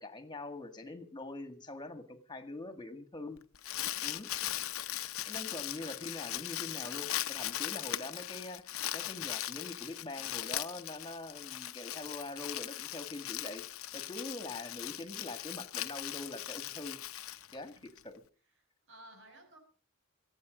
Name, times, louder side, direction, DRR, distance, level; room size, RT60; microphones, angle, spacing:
voice 1, 0.0-3.4 4.0-4.3 5.3-13.7 13.9-17.0 17.5-18.2, left 2 dB, 20° left, 9 dB, 1.9 m, -44 dB
Crumpling crinkling, 3.4-18.0, left 13 dB, 85° left, 0.7 m, -39 dB
voice 2, 3.6-4.1 17.7-17.8 18.9-19.6, right 1 dB, 60° right, 4 dB, 5.9 m, -57 dB
24.5 x 8.7 x 5.1 m, 0.40 s
head